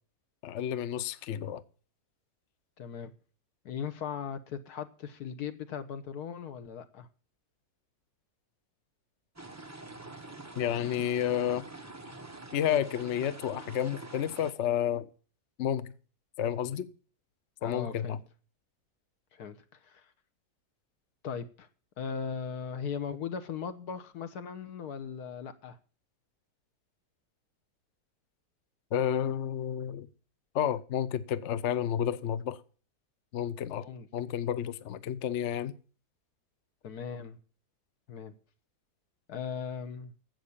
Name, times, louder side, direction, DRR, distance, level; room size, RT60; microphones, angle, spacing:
voice 1, 0.4-1.6 10.6-11.6 12.5-15.1 15.6-15.9 16.4-16.9 17.6-18.2 28.9-30.1 30.5-32.6 33.3-33.8 34.1-35.7, left 10 dB, 60° left, 0.9 m, -31 dB
voice 2, 2.8-3.1 3.6-7.1 17.6-18.2 19.3-19.6 19.8-20.1 21.2-21.7 22.0-25.8 33.8-34.1 36.8-37.4 38.1-38.3 39.3-40.1, left 7 dB, 80° left, 1.6 m, -38 dB
sound 1, 9.4-14.5, right 2 dB, 10° right, 1.1 m, -46 dB
11.5 x 7.9 x 7.1 m
omnidirectional pair, 1.7 m